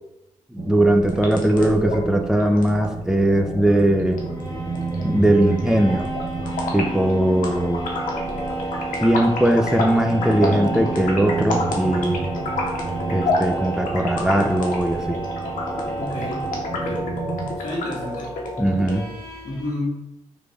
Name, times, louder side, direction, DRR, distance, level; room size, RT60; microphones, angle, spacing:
voice 1, 0.5-4.2 5.0-6.1 6.7-7.8 9.0-12.2 13.1-15.2 18.6-19.0, right 1 dB, 5° right, 4 dB, 0.5 m, -19 dB
sound 1, 0.6-17.6, right 4 dB, 55° right, 0.5 m, -32 dB
sound 2, 1.0-19.0, left 2 dB, 85° left, 0.7 m, -30 dB
sound 3, 1.4-1.6 4.0-17.2 18.8-19.7, right 3 dB, 35° left, 1.2 m, -33 dB
voice 2, 16.0-17.1 17.6-18.3 19.4-20.0, left 1 dB, 60° left, -6 dB, 1.1 m, -30 dB
3.3 x 2.5 x 3.4 m, 0.90 s
cardioid pair, 55°, 13 cm